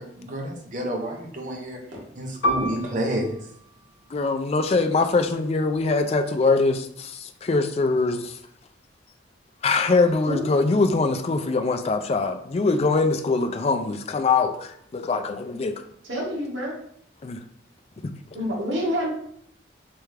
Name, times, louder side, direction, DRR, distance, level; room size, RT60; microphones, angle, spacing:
voice 1, 0.0-1.8 2.1-3.4, right 1 dB, 45° right, 2 dB, 0.7 m, -29 dB
Piano, 2.4-7.5 7.8-8.0 8.7-9.1, equal, 90° left, 0.7 m, -33 dB
voice 2, 4.1-8.4 9.6-15.7 17.2-17.4 18.0-18.1, left 3 dB, 35° left, 6 dB, 0.3 m, -23 dB
voice 3, 16.1-16.7 18.3-19.1, equal, 85° right, -3 dB, 1.4 m, -27 dB
3.4 x 3.3 x 3.3 m, 0.67 s
head